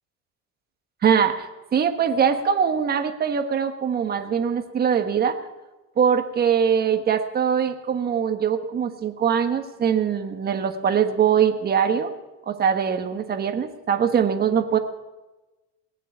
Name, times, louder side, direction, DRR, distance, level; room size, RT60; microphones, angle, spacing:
voice 1, 1.0-1.5 1.7-5.4 6.0-12.1 12.5-14.8, right 7 dB, 30° right, 7 dB, 1.4 m, -22 dB
20.5 x 7.5 x 9.1 m, 1.1 s
cardioid pair, 145°, 32 cm